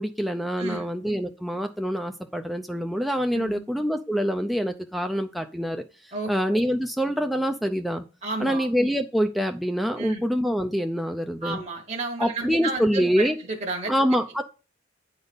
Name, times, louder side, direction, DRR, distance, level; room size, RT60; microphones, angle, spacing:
voice 1, 0.0-8.0 8.4-11.6 12.2-13.4 13.9-14.4, equal, ahead, 0.4 m, -25 dB
voice 2, 0.6-0.9 3.3-3.6 6.1-6.3 8.2-8.7 10.0-10.2 11.4-13.9, right 3 dB, 40° right, 1.1 m, -32 dB
9.1 x 4.0 x 5.2 m
head